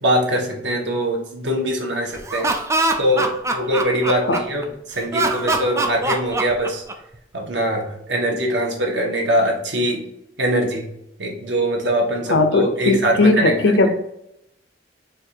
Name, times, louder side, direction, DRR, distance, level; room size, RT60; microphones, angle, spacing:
voice 1, 0.0-2.5 3.0-6.8 7.3-10.0 10.4-10.9 11.2-13.8, equal, 85° right, 0 dB, 1.2 m, -22 dB
Laughter, 2.1-4.6 5.1-7.2, right 2 dB, 15° right, 0.5 m, -22 dB
voice 2, 12.3-13.9, left 2 dB, 80° left, 7 dB, 0.7 m, -17 dB
4.3 x 2.6 x 4.4 m, 0.82 s
head